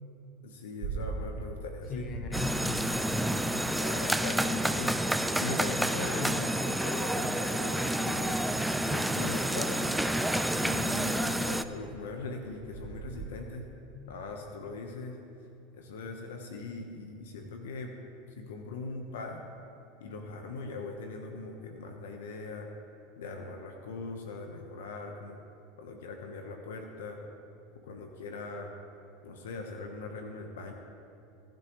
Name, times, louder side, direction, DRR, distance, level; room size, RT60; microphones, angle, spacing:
voice 1, 0.4-2.1 3.6-4.9 5.4-8.4 8.9-10.0 10.5-13.6 14.1-15.2 15.7-17.9 18.3-19.4 20.0-22.7 23.2-25.4 25.8-27.2 27.8-28.7 29.2-30.7, left 3 dB, 80° left, 3 dB, 1.1 m, -40 dB
sound 1, 0.8-5.7 6.7-6.8 7.3-13.3, right 4 dB, 70° right, 2.7 m, -44 dB
voice 2, 1.9-3.2 6.2-6.7 13.9-14.2, left 3 dB, 45° left, 5 dB, 1.4 m, -40 dB
sound 2, 2.3-11.6, right 1 dB, 5° right, 0.5 m, -29 dB
20.5 x 9.2 x 3.2 m, 2.7 s
hypercardioid pair, 95°, 0 cm